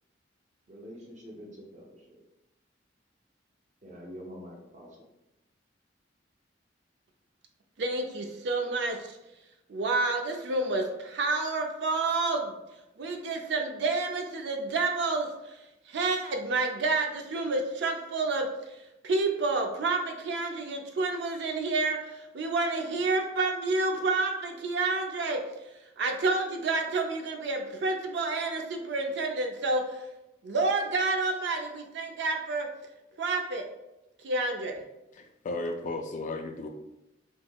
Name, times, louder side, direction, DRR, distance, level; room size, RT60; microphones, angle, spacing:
voice 1, 0.7-2.0 3.8-4.9, equal, 40° right, -1 dB, 0.8 m, -45 dB
voice 2, 7.8-9.2 9.7-12.6 13.0-15.6 15.9-18.5 19.0-25.4 26.0-30.0 30.4-32.7 33.2-33.7 34.2-34.8, right 3 dB, 65° right, 4 dB, 0.4 m, -29 dB
voice 3, 35.1-36.7, left 2 dB, 45° left, 5 dB, 0.3 m, -34 dB
3.6 x 2.9 x 2.2 m, 0.94 s
head